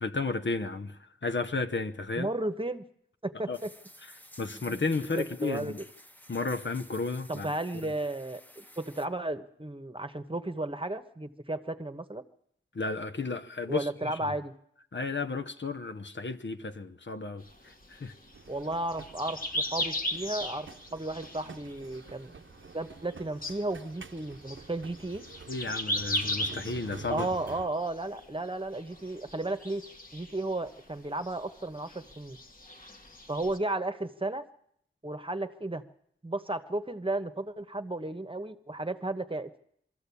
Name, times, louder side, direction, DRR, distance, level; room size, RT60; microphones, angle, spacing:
voice 1, 0.0-2.3 3.5-3.6 4.4-5.8 6.3-7.5 7.8-7.9 12.7-14.2 14.9-18.1 25.5-27.3, left 3 dB, 65° left, 1.0 m, -33 dB
voice 2, 2.2-2.8 3.2-3.7 4.5-4.9 5.2-5.7 7.3-12.2 13.7-14.5 18.5-22.4 22.7-25.2 27.1-29.8 30.1-32.4 33.3-34.4 35.0-35.8 36.2-39.6, right 2 dB, 25° right, 1.2 m, -34 dB
sound 1, 3.5-9.1, equal, 10° left, 1.1 m, -52 dB
sound 2, 17.4-22.3 22.6-23.1 23.4-28.5 28.7-30.8 31.1-33.6, left 1 dB, 45° left, 1.7 m, -37 dB
sound 3, 18.3-27.7, right 5 dB, 75° right, 0.7 m, -49 dB
22.5 x 14.0 x 8.4 m
wide cardioid pair, 65°, 20 cm